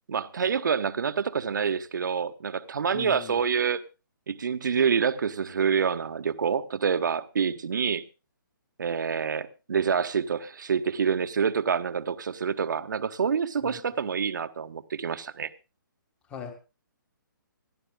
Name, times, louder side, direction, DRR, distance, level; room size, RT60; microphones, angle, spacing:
voice 1, 0.1-3.8 4.3-8.0 8.8-15.5, right 6 dB, 60° right, 1.2 m, -27 dB
voice 2, 2.9-3.4 13.6-13.8 16.3-16.5, left 7 dB, 10° left, 1.7 m, -39 dB
26.5 x 11.5 x 2.3 m
hypercardioid pair, 175°, 11 cm